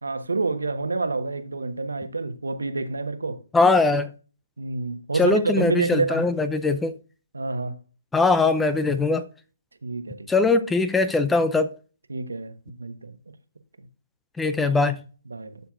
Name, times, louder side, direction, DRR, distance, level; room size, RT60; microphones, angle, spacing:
voice 1, 0.0-3.4 4.6-6.3 7.3-7.8 9.8-10.3 12.1-13.1 15.3-15.6, right 3 dB, 80° right, 1.1 m, -28 dB
voice 2, 3.5-4.1 5.1-6.9 8.1-9.2 10.3-11.7 14.4-15.0, left 3 dB, 5° left, 0.5 m, -21 dB
12.0 x 7.0 x 2.4 m
figure-of-eight pair, 135°, 0 cm